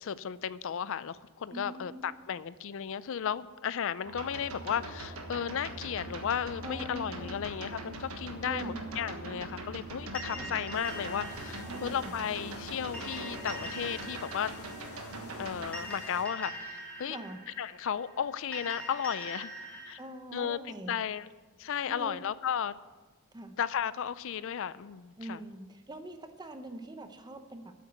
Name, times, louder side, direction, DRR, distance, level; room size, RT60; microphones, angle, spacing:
voice 1, 0.0-14.5 15.4-17.2 17.6-19.5 19.9-20.0 20.3-20.6 20.9-21.3 21.6-22.7 23.6-25.4, left 8 dB, 60° left, 17 dB, 0.4 m, -34 dB
voice 2, 1.5-2.1 6.6-7.4 8.4-9.0 10.3-10.5 11.7-12.3 17.1-17.4 20.0-20.9 21.9-22.2 23.3-23.5 25.2-27.7, right 1 dB, 20° right, 8 dB, 0.7 m, -43 dB
sound 1, 4.0-15.7, right 2 dB, 75° right, 1.4 m, -42 dB
sound 2, 10.1-19.9, equal, 5° left, 3.1 m, -44 dB
sound 3, 10.7-16.2, left 2 dB, 85° left, 1.5 m, -49 dB
8.6 x 8.2 x 8.1 m, 1.3 s
head